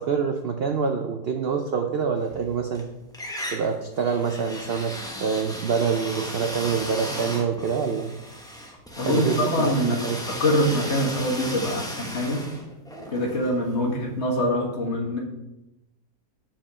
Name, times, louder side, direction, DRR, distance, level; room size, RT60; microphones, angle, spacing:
voice 1, 0.0-2.8 3.5-8.1 9.0-10.4, right 6 dB, 60° right, 4 dB, 0.6 m, -26 dB
sound 1, 2.2-2.8 3.1-14.0, equal, 5° left, 0.8 m, -36 dB
voice 2, 9.0-10.0 10.3-12.4 13.1-15.2, left 1 dB, 45° left, -1 dB, 1.7 m, -24 dB
7.3 x 5.1 x 5.5 m, 0.93 s
omnidirectional pair, 1.7 m